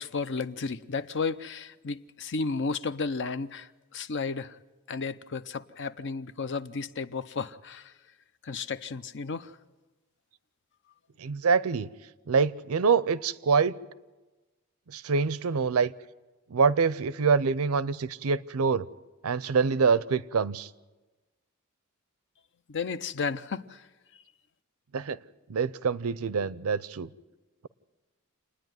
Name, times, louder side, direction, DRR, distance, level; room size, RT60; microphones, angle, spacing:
voice 1, 0.0-4.6 4.9-7.9 8.4-9.6 22.7-23.9, left 4 dB, 55° left, 0.6 m, -33 dB
voice 2, 11.2-11.9 12.3-13.8 14.9-15.9 16.5-18.9 19.2-20.7 24.9-25.2 25.5-27.1, right 5 dB, 75° right, 0.6 m, -25 dB
28.0 x 10.0 x 9.3 m
head